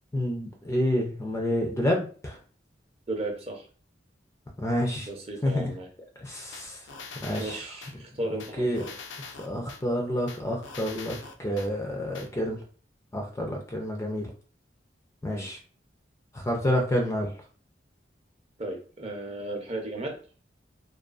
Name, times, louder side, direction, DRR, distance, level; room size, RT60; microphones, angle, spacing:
voice 1, 0.1-2.4 4.6-5.1 5.4-5.7 6.2-6.9 7.2-7.6 8.3-8.9 9.4-12.6 13.1-14.3 15.2-15.6 16.3-17.3, equal, 15° left, 2 dB, 0.3 m, -29 dB
voice 2, 3.1-3.7 5.1-5.9 7.4-8.9 15.2-15.5 18.6-20.2, right 1 dB, 30° right, 2 dB, 0.5 m, -35 dB
sound 1, 6.5-7.9 8.4-9.8 10.3-11.7 12.1-12.3, left 4 dB, 85° left, 0.4 m, -43 dB
2.4 x 2.2 x 2.3 m, 0.40 s
head